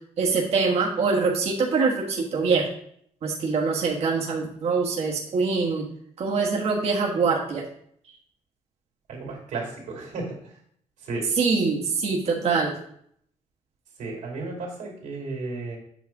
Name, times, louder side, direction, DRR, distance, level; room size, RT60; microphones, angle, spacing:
voice 1, 0.2-2.7 3.2-5.9 6.2-7.6 11.4-12.7, right 4 dB, 55° right, -2 dB, 1.3 m, -24 dB
voice 2, 9.1-10.6 11.0-11.3 14.0-15.8, right 3 dB, 80° right, -1 dB, 2.7 m, -34 dB
8.3 x 3.3 x 5.8 m, 0.66 s
cardioid pair, 130°, 12 cm